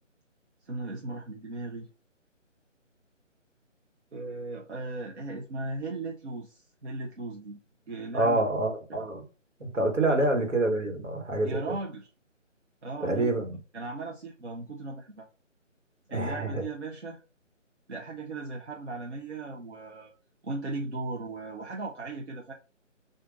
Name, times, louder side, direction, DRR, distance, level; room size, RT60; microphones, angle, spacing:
voice 1, 0.6-1.9 4.1-7.6 7.9-8.4 11.4-12.1 12.8-13.3 13.7-15.2 16.1-17.2 17.9-20.1 20.4-22.5, right 2 dB, 60° right, 0.8 m, -37 dB
voice 2, 8.1-9.3 9.6-11.8 13.0-13.6 16.1-16.6, right 2 dB, 75° right, 1.5 m, -27 dB
3.9 x 2.6 x 3.6 m
figure-of-eight pair, 150°, 38 cm